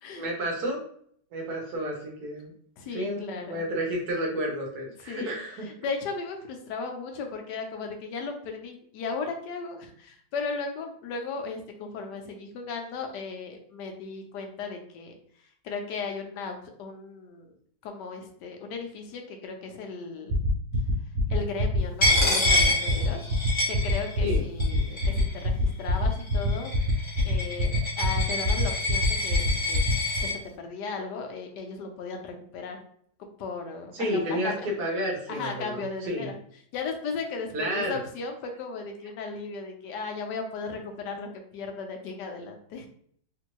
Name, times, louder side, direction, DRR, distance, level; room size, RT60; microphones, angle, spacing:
voice 1, 0.2-0.8 1.3-2.5 2.9-5.7 24.2-24.4 33.9-36.3 37.5-37.9, equal, 55° right, -1 dB, 1.4 m, -31 dB
voice 2, 2.8-3.7 5.1-15.1 15.6-17.5 17.8-20.4 21.3-23.3 23.7-26.7 27.2-29.8 30.2-32.8 33.2-34.6 35.3-36.3 36.7-42.9, left 4 dB, 70° left, 3 dB, 1.1 m, -36 dB
sound 1, 20.3-30.2, equal, 85° right, 1.5 m, -25 dB
Coin (dropping), 22.0-24.3 24.6-25.4 26.1-30.3, left 1 dB, 40° left, 0.3 m, -27 dB
3.5 x 2.6 x 2.9 m, 0.63 s
omnidirectional pair, 2.2 m